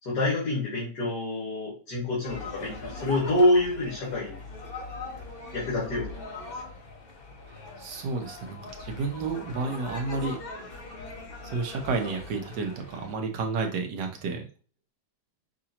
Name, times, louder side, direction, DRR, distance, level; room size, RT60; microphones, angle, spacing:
voice 1, 0.0-4.4 5.5-6.1, left 1 dB, 70° left, -6 dB, 2.3 m, -26 dB
sound 1, 2.2-13.1, left 2 dB, 40° left, 0.9 m, -41 dB
voice 2, 7.8-10.4 11.4-14.5, right 4 dB, 85° right, 3 dB, 1.5 m, -31 dB
6.0 x 2.5 x 2.9 m, 0.38 s
omnidirectional pair, 1.8 m